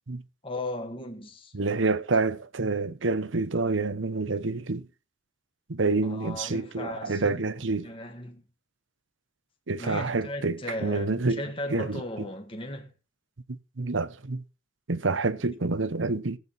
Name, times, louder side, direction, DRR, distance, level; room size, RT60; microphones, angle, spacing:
voice 1, 0.4-1.5 6.0-8.5 9.8-12.9, left 1 dB, 30° left, 1.8 m, -37 dB
voice 2, 1.5-4.9 5.7-7.9 9.7-11.4 11.7-12.0 13.5-14.4 14.9-16.4, right 3 dB, 90° right, 0.9 m, -28 dB
15.0 x 8.8 x 4.2 m
head